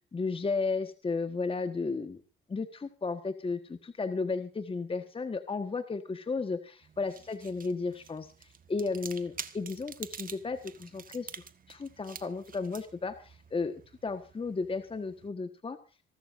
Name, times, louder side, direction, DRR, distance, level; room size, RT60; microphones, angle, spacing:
voice 1, 0.1-2.2 2.5-13.7 14.0-15.8, left 4 dB, 25° left, 9 dB, 1.5 m, -34 dB
sound 1, 6.8-15.3, right 7 dB, 45° right, 1.5 m, -48 dB
27.0 x 13.0 x 2.6 m, 0.34 s
cardioid pair, 90°, 20 cm